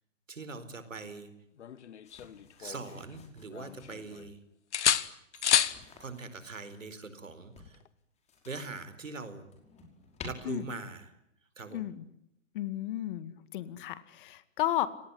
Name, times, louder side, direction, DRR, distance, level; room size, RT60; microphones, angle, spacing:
voice 1, 0.3-1.3 2.6-4.4 6.0-7.8 8.4-9.5 10.2-11.1 11.6-11.8, right 3 dB, 90° right, 12 dB, 4.5 m, -42 dB
sound 1, 1.6-3.1 3.5-4.3 4.7-5.8 7.7-7.9, left 9 dB, 65° left, 1.6 m, -30 dB
sound 2, 2.0-4.0 5.4-6.8 7.5-8.8 9.2-10.3, left 5 dB, 15° left, 5.3 m, -52 dB
voice 2, 11.7-12.1 12.5-14.9, left 13 dB, 45° left, 15 dB, 2.0 m, -33 dB
29.5 x 18.5 x 9.7 m, 0.79 s
hypercardioid pair, 135°, 37 cm